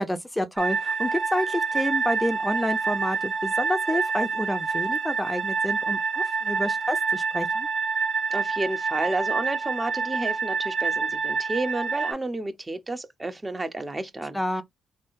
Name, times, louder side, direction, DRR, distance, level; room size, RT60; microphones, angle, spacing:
voice 1, 0.0-7.7 14.3-14.6, left 1 dB, 10° left, 0.6 m, -29 dB
sound 1, 0.6-12.1, right 5 dB, 50° right, 1.1 m, -27 dB
voice 2, 8.3-14.6, right 2 dB, 25° right, 0.8 m, -31 dB
3.5 x 2.3 x 2.6 m
hypercardioid pair, 45°, 0 cm